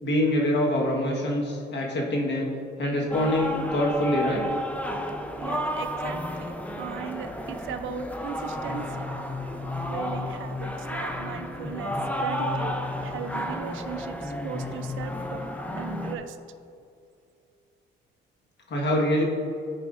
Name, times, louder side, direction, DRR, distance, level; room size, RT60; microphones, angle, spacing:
voice 1, 0.0-2.5 2.8-4.4 18.7-19.2, left 1 dB, 60° left, -1 dB, 1.5 m, -25 dB
sound 1, 3.1-16.1, left 1 dB, 5° left, 0.6 m, -32 dB
voice 2, 5.4-6.5 6.8-9.1 9.9-15.5 15.8-16.4, right 8 dB, 80° right, 10 dB, 0.5 m, -38 dB
11.0 x 4.9 x 2.6 m, 2.5 s
cardioid pair, 90°, 20 cm